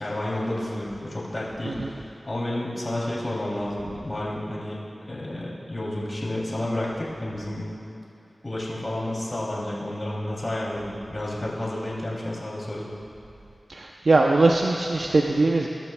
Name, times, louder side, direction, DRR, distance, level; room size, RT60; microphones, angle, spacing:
voice 1, 0.0-4.8 5.1-7.6 8.4-12.9, left 1 dB, 50° left, -5 dB, 2.8 m, -30 dB
voice 2, 13.7-15.7, right 2 dB, 70° right, 0 dB, 0.6 m, -21 dB
20.5 x 12.0 x 2.3 m, 2.9 s
cardioid pair, 45°, 0 cm